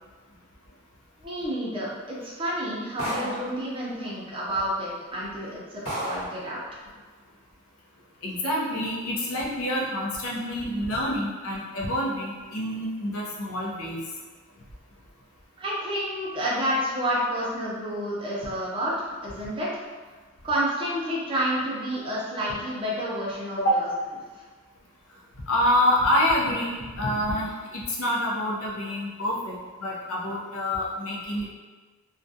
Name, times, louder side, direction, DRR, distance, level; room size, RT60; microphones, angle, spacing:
voice 1, 1.2-6.6 15.6-19.7 20.4-23.9, equal, 25° right, -6 dB, 0.5 m, -29 dB
sound 1, 3.0-3.6 4.6-4.7 5.2-5.4 5.9-6.4, right 1 dB, 65° left, 1.1 m, -31 dB
voice 2, 8.2-14.0 23.6-23.7 25.4-31.5, left 1 dB, 80° left, -4 dB, 0.6 m, -27 dB
2.3 x 2.2 x 2.6 m, 1.4 s
head